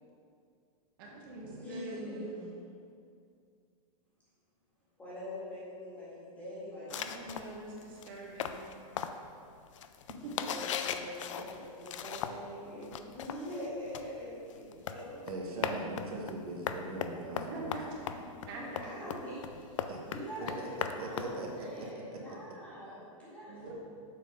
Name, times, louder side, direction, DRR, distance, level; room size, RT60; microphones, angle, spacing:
voice 1, 1.0-2.5 6.9-8.6 10.2-10.7 17.3-17.9 18.2-18.9 20.5-20.8 23.5-23.7, right 1 dB, 35° right, -2 dB, 1.4 m, -44 dB
voice 2, 1.6-2.2 5.0-7.3 10.4-15.2 18.4-20.6 20.8-23.7, left 1 dB, 5° left, -10 dB, 1.9 m, -44 dB
sound 1, 6.9-12.6 12.8-21.9, left 8 dB, 60° left, 0.4 m, -39 dB
voice 3, 15.3-17.7 19.9-20.0 20.8-22.2, right 2 dB, 85° right, -1 dB, 1.5 m, -40 dB
7.5 x 4.4 x 5.3 m, 2.3 s
supercardioid pair, 175°, 19 cm